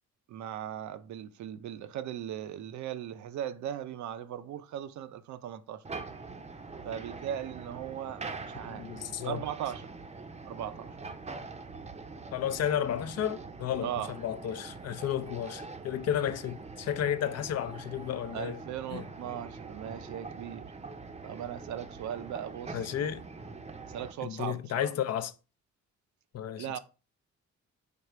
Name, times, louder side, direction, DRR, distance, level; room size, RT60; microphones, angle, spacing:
voice 1, 0.3-5.8 6.8-8.9 9.2-9.9 10.4-10.9 13.8-14.1 18.3-20.7 21.2-22.8 23.8-24.9 26.6-26.8, right 10 dB, 70° right, 0.5 m, -38 dB
sound 1, 5.8-24.1, right 4 dB, 20° right, 0.6 m, -44 dB
voice 2, 8.6-9.5 12.3-18.6 18.9-19.0 22.7-23.2 24.2-25.3 26.3-26.8, left 10 dB, 55° left, 0.5 m, -32 dB
5.0 x 2.3 x 4.4 m
cardioid pair, 90°, 30 cm